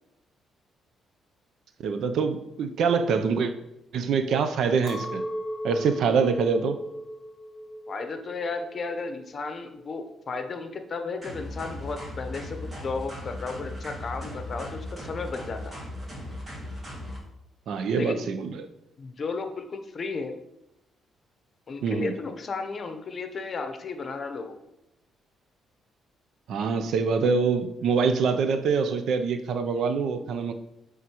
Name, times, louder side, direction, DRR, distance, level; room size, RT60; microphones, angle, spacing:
voice 1, 1.8-3.5 3.9-5.2 5.6-6.8 17.7-18.7 21.8-22.1 26.5-30.5, right 5 dB, 70° right, 8 dB, 0.5 m, -25 dB
Chink clink, 4.8-10.2, equal, 15° right, 2.3 m, -38 dB
voice 2, 7.9-12.6 12.8-15.8 17.9-18.3 19.0-20.4 21.7-24.5, left 4 dB, 45° left, 7 dB, 0.8 m, -34 dB
sound 1, 11.2-17.2, left 1 dB, 35° right, 2.1 m, -37 dB
9.1 x 3.7 x 3.0 m, 0.88 s
cardioid pair, 90°, 0 cm